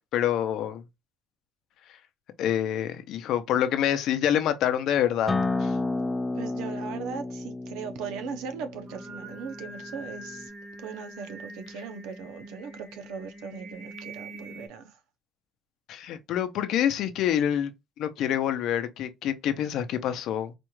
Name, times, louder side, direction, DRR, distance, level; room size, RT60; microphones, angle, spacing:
voice 1, 0.1-0.8 2.4-5.3 5.6-5.7 15.9-17.7 18.0-20.5, left 10 dB, 55° left, 0.6 m, -26 dB
Acoustic guitar, 5.3-10.5, left 3 dB, 10° left, 0.3 m, -32 dB
voice 2, 6.3-10.5 10.8-15.0, right 6 dB, 85° right, 0.7 m, -39 dB
Singing, 8.7-14.7, right 1 dB, 45° right, 1.5 m, -44 dB
4.2 x 2.4 x 3.1 m
cardioid pair, 175°, 0 cm